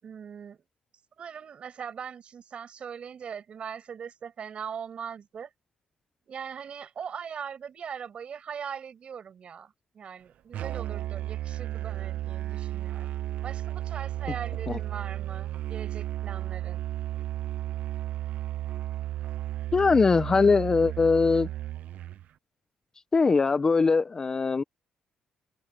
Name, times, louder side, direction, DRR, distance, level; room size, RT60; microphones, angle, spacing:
voice 1, 0.0-0.6 1.2-5.5 6.3-13.1 13.4-16.8, right 7 dB, 45° right, 5.8 m, -40 dB
Musical instrument, 10.5-22.2, right 13 dB, 60° right, 0.6 m, -34 dB
voice 2, 19.7-21.5 23.1-24.6, left 4 dB, 25° left, 0.6 m, -21 dB
cardioid pair, 140°, 3 cm